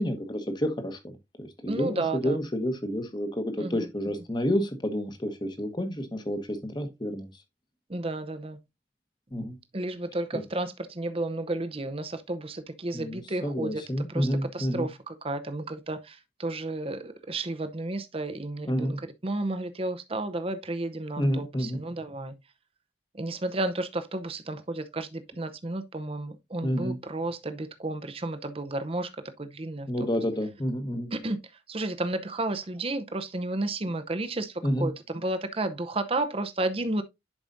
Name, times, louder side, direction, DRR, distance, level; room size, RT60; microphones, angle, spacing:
voice 1, 0.0-7.3 9.3-9.6 10.3-10.4 12.9-14.9 18.7-19.0 21.2-21.8 26.6-27.0 29.9-31.1 34.6-34.9, equal, 25° left, 1.2 m, -29 dB
voice 2, 1.7-2.4 3.6-3.9 7.9-8.6 9.7-22.3 23.1-29.1 29.4-30.1 31.1-31.4 31.7-37.0, right 2 dB, 30° right, 0.7 m, -32 dB
10.5 x 4.9 x 2.6 m
head